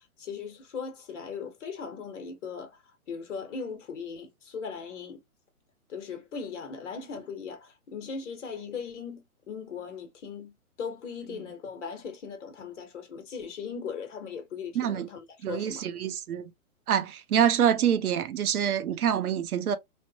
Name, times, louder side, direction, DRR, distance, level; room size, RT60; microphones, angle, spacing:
voice 1, 0.0-2.8 3.1-5.2 5.9-15.9, left 6 dB, 55° left, 0.9 m, -39 dB
voice 2, 14.8-15.1 15.4-16.5 16.9-19.8, right 9 dB, 80° right, 0.6 m, -26 dB
3.1 x 2.1 x 2.7 m
hypercardioid pair, 140°, 44 cm